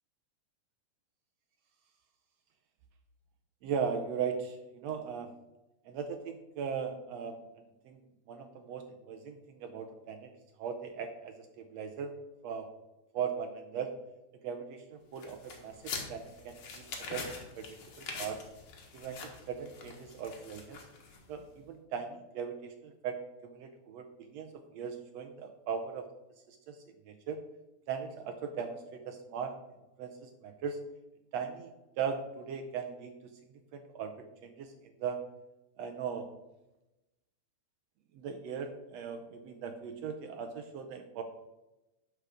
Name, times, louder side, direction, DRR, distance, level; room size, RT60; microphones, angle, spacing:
voice 1, 3.6-5.3 5.9-7.4 7.8-8.0 8.3-10.3 10.6-12.1 12.4-12.7 13.1-13.9 14.4-16.8 17.1-17.3 17.6-17.7 18.0-18.4 18.9-20.8 21.3-23.2 23.4-26.1 26.5-26.8 27.1-27.4 27.9-29.5 30.0-30.8 31.3-31.7 32.0-33.3 33.7-34.7 35.0-35.2 35.8-36.3 38.2-41.2, right 6 dB, 75° right, 5 dB, 1.6 m, -38 dB
sound 1, 15.2-21.4, left 4 dB, 50° left, 1.8 m, -44 dB
11.5 x 4.6 x 4.9 m, 0.99 s
omnidirectional pair, 3.5 m